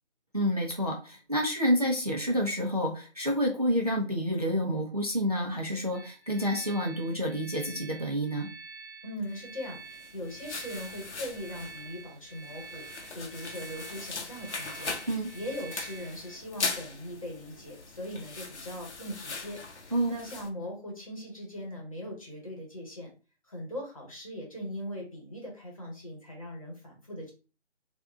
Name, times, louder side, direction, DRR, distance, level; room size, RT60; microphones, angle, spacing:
voice 1, 0.3-8.5 15.1-15.3 19.9-20.1, equal, 35° right, 0 dB, 0.5 m, -28 dB
sound 1, 5.9-16.3, right 3 dB, ahead, 1.3 m, -48 dB
voice 2, 9.0-12.9 13.1-14.9 15.3-23.1 23.4-27.3, equal, 30° left, -1 dB, 1.1 m, -40 dB
sound 2, 9.8-20.5, left 4 dB, 75° left, 0.9 m, -40 dB
3.5 x 2.4 x 3.6 m, 0.34 s
hypercardioid pair, 180°, 34 cm